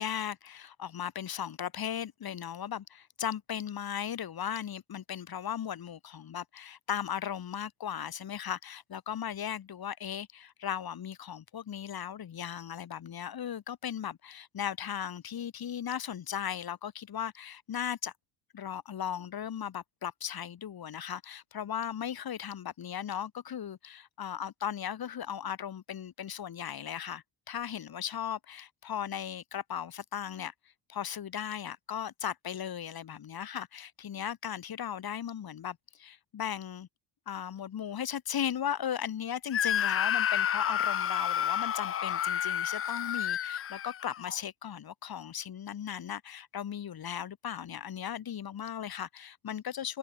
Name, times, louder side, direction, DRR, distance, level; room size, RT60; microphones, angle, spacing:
voice 1, 0.0-18.1 18.5-30.5 30.9-36.9 37.3-50.0, left 9 dB, 50° left, 6.2 m, -37 dB
Screaming, 39.5-44.4, left 9 dB, 30° left, 0.6 m, -30 dB
supercardioid pair, 75°, 47 cm